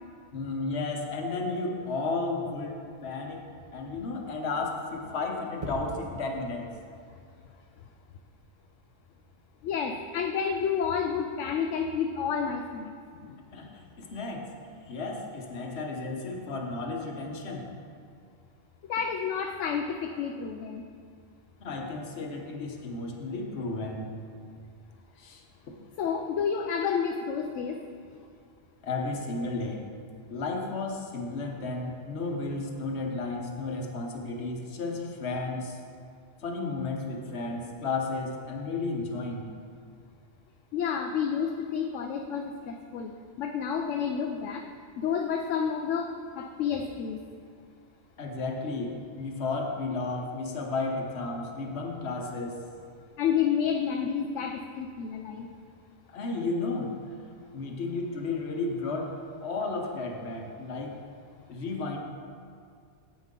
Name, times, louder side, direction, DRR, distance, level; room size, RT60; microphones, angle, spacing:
voice 1, 0.3-6.8 13.5-14.5 14.9-17.7 21.6-24.1 25.2-25.4 28.8-29.8 30.3-35.8 36.4-39.5 48.2-52.5 56.1-56.9 57.5-61.0 61.5-62.0, left 3 dB, 60° left, 2 dB, 1.3 m, -33 dB
sound 1, 5.6-6.1 8.1-8.4, right 1 dB, 30° right, 1.1 m, -39 dB
voice 2, 9.6-12.9 13.2-13.4 18.9-20.8 26.0-27.8 40.7-43.1 43.4-44.6 45.0-47.2 53.2-55.5, left 7 dB, 80° left, 3 dB, 0.9 m, -30 dB
9.4 x 8.2 x 3.7 m, 2.2 s
omnidirectional pair, 1.3 m